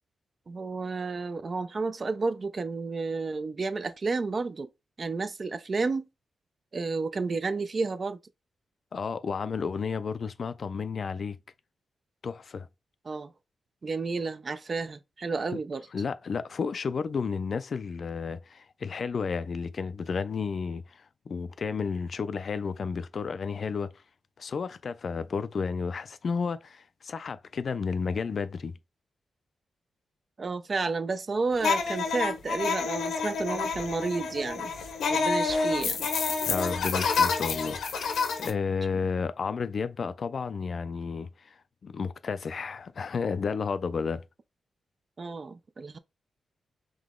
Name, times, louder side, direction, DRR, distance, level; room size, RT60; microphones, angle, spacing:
voice 1, 0.5-4.7 5.0-6.0 6.7-8.2 13.1-13.3 13.8-15.8 30.4-34.7 35.1-36.0 45.2-46.0, right 4 dB, 40° right, 0.4 m, -31 dB
voice 2, 8.9-11.4 12.2-12.7 15.9-24.0 24.4-28.7 36.5-44.2, left 5 dB, 50° left, 0.4 m, -32 dB
sound 1, 31.6-38.5, left 5 dB, 85° left, 0.9 m, -28 dB
3.8 x 2.9 x 3.6 m
wide cardioid pair, 115°, 0 cm